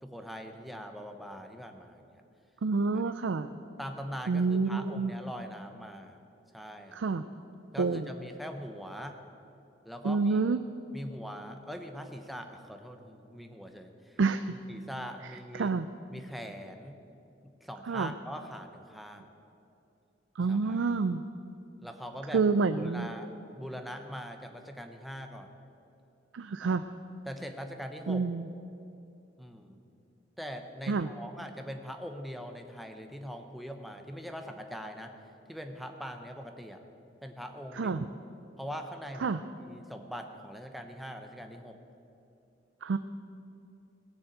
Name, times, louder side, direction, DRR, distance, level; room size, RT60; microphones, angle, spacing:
voice 1, 0.0-2.2 3.8-6.2 6.5-7.0 7.7-9.2 9.8-10.4 10.9-14.2 14.5-15.7 16.1-17.0 17.6-19.3 20.5-20.8 21.8-22.4 22.7-25.5 26.6-26.8 27.3-28.2 29.4-29.8 30.4-35.1 35.5-36.8 37.2-38.0 38.6-41.8, equal, ahead, 5 dB, 0.9 m, -42 dB
voice 2, 2.6-3.5 4.3-5.1 6.9-7.2 7.8-8.1 10.0-10.6 14.2-14.4 15.5-15.9 17.9-18.1 20.4-21.2 22.3-23.1 26.3-26.8 28.1-28.5 30.9-31.1 37.8-38.0 39.2-39.4 42.8-43.0, right 4 dB, 85° right, 11 dB, 0.5 m, -28 dB
18.0 x 7.0 x 8.0 m, 2.7 s
head